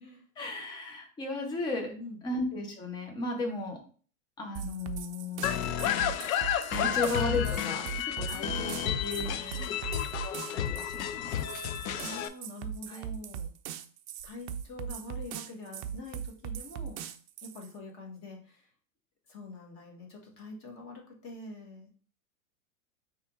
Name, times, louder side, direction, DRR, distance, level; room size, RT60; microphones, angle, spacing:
voice 1, 0.4-1.9 2.2-3.8 4.4-5.7 6.7-9.6 10.2-11.4 12.9-13.0, left 2 dB, 10° left, 3 dB, 0.5 m, -35 dB
voice 2, 1.7-2.2 8.3-9.8 11.9-13.5 14.2-17.0 17.4-18.7 19.3-21.9, left 2 dB, 30° left, 1 dB, 1.2 m, -45 dB
sound 1, 4.5-17.7, right 9 dB, 50° right, 0.5 m, -40 dB
sound 2, 5.4-12.3, left 10 dB, 70° left, 0.6 m, -31 dB
sound 3, 11.3-11.7 12.7-12.8 13.4-13.5 14.2-14.9, left 4 dB, 90° left, 1.6 m, -50 dB
4.5 x 3.0 x 3.6 m, 0.42 s
supercardioid pair, 150°, 43 cm